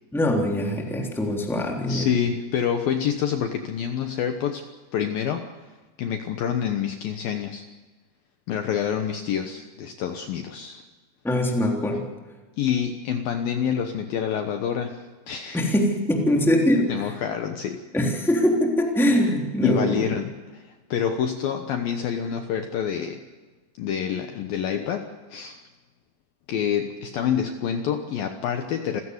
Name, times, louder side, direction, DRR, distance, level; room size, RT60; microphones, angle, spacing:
voice 1, 0.1-2.1 11.2-12.1 15.5-16.9 17.9-20.1, left 1 dB, ahead, 1 dB, 2.6 m, -22 dB
voice 2, 1.9-5.5 6.0-7.6 8.5-10.8 12.6-15.7 16.9-17.9 19.6-23.3 23.8-25.6 26.5-29.0, left 8 dB, 70° left, 6 dB, 2.5 m, -27 dB
29.0 x 16.0 x 8.0 m, 1.3 s
omnidirectional pair, 5.1 m